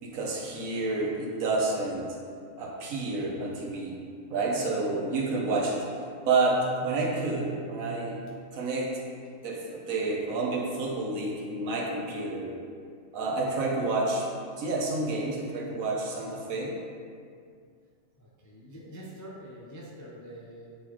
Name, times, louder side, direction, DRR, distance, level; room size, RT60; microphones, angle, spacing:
voice 1, 0.0-2.1 2.6-4.0 4.3-5.9 6.2-9.0 9.4-12.6 13.1-14.3 14.6-16.8, right 3 dB, 70° right, -1 dB, 1.2 m, -29 dB
voice 2, 18.2-20.8, equal, 25° left, -5 dB, 0.3 m, -45 dB
8.1 x 3.9 x 3.0 m, 2.2 s
omnidirectional pair, 1.5 m